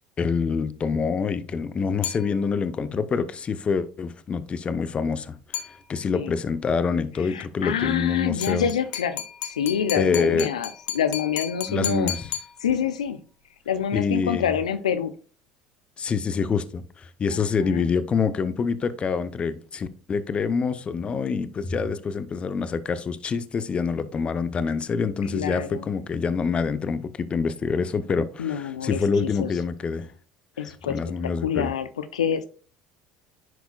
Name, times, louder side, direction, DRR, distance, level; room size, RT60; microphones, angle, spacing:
voice 1, 0.2-8.7 9.9-10.5 11.7-12.3 13.9-14.5 16.0-30.1 30.9-31.7, left 5 dB, 35° left, 0.7 m, -26 dB
sound 1, 2.0-2.8 5.5-6.3 8.4-13.1, left 11 dB, 60° left, 1.0 m, -35 dB
voice 2, 7.2-12.1 12.6-13.2 13.7-15.1 17.3-17.9 25.3-25.8 28.4-29.5 30.6-32.5, left 8 dB, 90° left, 0.5 m, -27 dB
10.5 x 4.6 x 2.3 m
hypercardioid pair, 70°, 3 cm